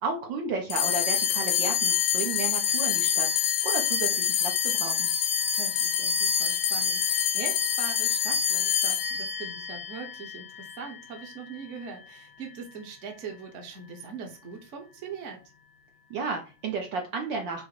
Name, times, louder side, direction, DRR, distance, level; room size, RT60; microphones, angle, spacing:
voice 1, 0.0-3.3 3.6-5.1 16.1-17.6, right 4 dB, 70° right, 2 dB, 1.2 m, -33 dB
sound 1, 0.7-11.3, left 8 dB, 75° left, 1.2 m, -26 dB
voice 2, 5.5-15.4, right 5 dB, 45° right, 2 dB, 1.0 m, -41 dB
5.0 x 2.1 x 4.7 m, 0.32 s
omnidirectional pair, 2.4 m